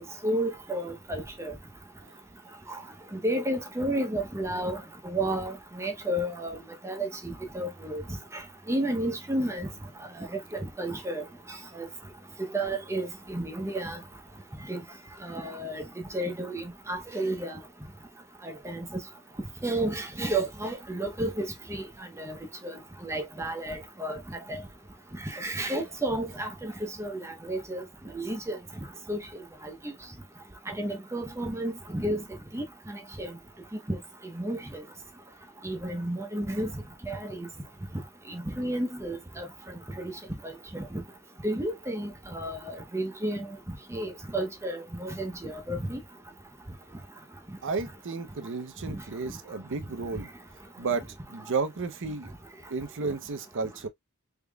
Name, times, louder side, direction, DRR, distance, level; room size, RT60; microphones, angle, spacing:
voice 1, 0.2-1.5 2.7-2.8 3.1-6.6 6.8-8.0 8.3-8.4 8.7-9.7 10.3-11.2 11.8-11.9 12.5-14.0 14.7-14.8 15.2-15.8 16.1-17.6 18.4-18.9 19.6-21.8 22.2-22.4 23.0-24.6 25.2-26.7 27.0-27.8 28.1-28.6 29.1-29.2 29.6-29.7 30.7-32.2 32.5-33.3 33.9-34.0 34.3-34.8 35.6-37.5 38.3-39.5 40.0-40.1 40.4-41.0 41.4-43.5 43.9-46.0 48.9-49.0, right 1 dB, 15° right, 0.7 m, -32 dB
voice 2, 47.6-50.3 50.8-52.3 52.7-53.9, right 4 dB, 60° right, 0.7 m, -33 dB
3.7 x 3.6 x 2.2 m
head